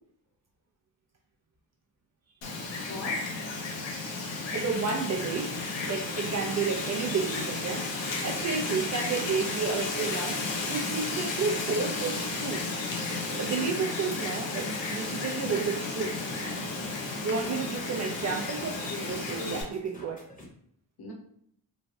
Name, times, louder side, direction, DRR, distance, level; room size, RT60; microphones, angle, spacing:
Wind, 2.4-19.6, left 3 dB, 85° left, 0.8 m, -33 dB
voice 1, 2.9-3.3 7.1-7.2 9.2-9.6 17.3-17.6 18.7-19.6 21.0-21.1, left 1 dB, 60° left, -1 dB, 0.9 m, -41 dB
voice 2, 4.5-7.9 8.2-10.4 10.7-12.6 13.4-16.1 17.2-18.7 19.1-20.2, right 5 dB, 40° right, 0 dB, 0.4 m, -31 dB
sound 1, 15.5-20.5, left 1 dB, 20° left, 0.8 m, -49 dB
3.1 x 2.1 x 2.6 m, 0.66 s
cardioid pair, 105°, 43 cm